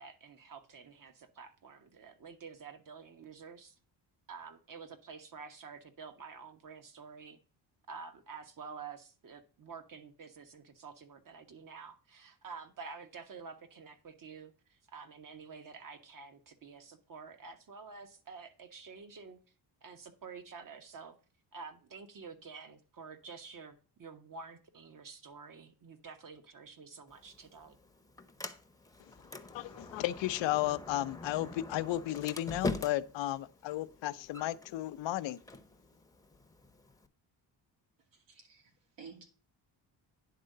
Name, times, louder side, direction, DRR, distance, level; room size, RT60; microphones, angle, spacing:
voice 1, 0.0-3.8 4.3-7.4 7.9-19.4 19.8-21.2 21.5-27.8, right 5 dB, 45° right, 1.4 m, -49 dB
Sliding door, 27.1-37.1, left 3 dB, 10° left, 0.8 m, -44 dB
voice 2, 29.5-35.4, left 15 dB, 80° left, 0.7 m, -34 dB
voice 3, 38.1-38.7 39.0-39.3, right 5 dB, 75° right, 2.8 m, -52 dB
10.0 x 3.7 x 6.6 m
cardioid pair, 85°, 44 cm